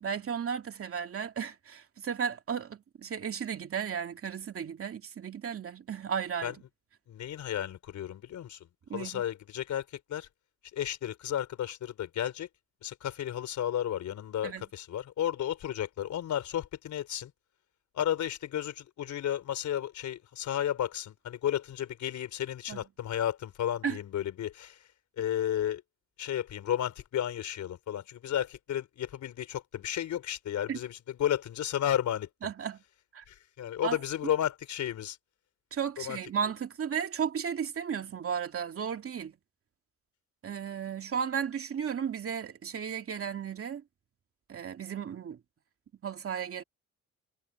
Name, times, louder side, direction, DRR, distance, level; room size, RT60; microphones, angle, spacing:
voice 1, 0.0-6.5 8.9-9.2 14.4-14.6 22.7-22.8 23.8-24.0 30.7-30.8 32.4-32.8 33.1-33.2 33.8-34.0 35.7-39.3 40.4-43.8 44.5-45.4 46.0-46.6, right 7 dB, 50° right, 2.5 m, -34 dB
voice 2, 7.1-10.3 10.7-12.5 12.8-17.3 17.9-24.8 25.2-25.8 26.2-32.5 33.3-35.2 36.0-36.2, left 10 dB, 70° left, 4.2 m, -33 dB
cardioid pair, 90°, 30 cm